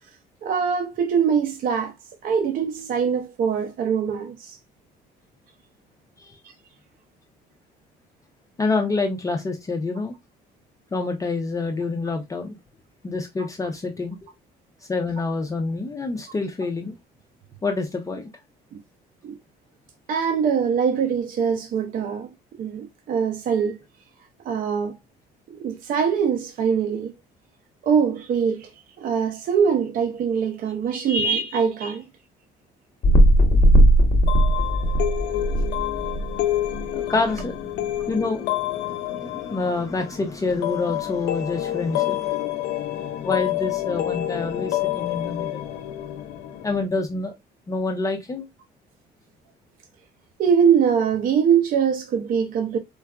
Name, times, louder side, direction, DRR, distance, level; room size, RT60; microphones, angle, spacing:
voice 1, 0.4-1.9 2.2-4.6 18.7-18.8 19.2-19.4 20.1-22.3 22.6-23.8 24.4-25.0 25.5-27.1 27.8-32.0 50.4-52.8, right 7 dB, 55° right, 0.5 m, -23 dB
voice 2, 8.6-10.2 10.9-12.6 13.0-14.2 14.8-16.9 17.6-18.3 30.9-31.1 36.9-37.6 37.9-42.5 43.2-45.6 46.6-47.3 47.7-48.5, left 3 dB, 20° left, 0.5 m, -27 dB
sound 1, 33.0-36.8 37.4-37.5, right 1 dB, 45° left, 1.0 m, -17 dB
sound 2, 34.3-46.9, left 14 dB, 85° left, 0.5 m, -28 dB
4.5 x 2.3 x 2.2 m
cardioid pair, 110°, 17 cm